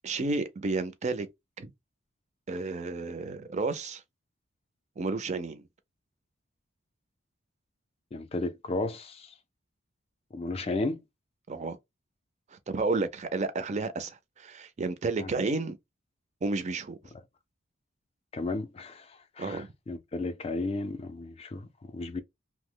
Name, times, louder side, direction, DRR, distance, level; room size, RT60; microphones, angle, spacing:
voice 1, 0.0-1.3 1.6-1.7 2.5-4.0 5.0-5.7 11.5-11.8 12.5-15.8 16.4-17.0 19.4-19.7, right 3 dB, 35° right, 0.4 m, -31 dB
voice 2, 8.1-9.3 10.3-11.0 15.2-15.3 18.3-22.2, left 2 dB, 30° left, 0.4 m, -34 dB
2.7 x 2.0 x 3.6 m
head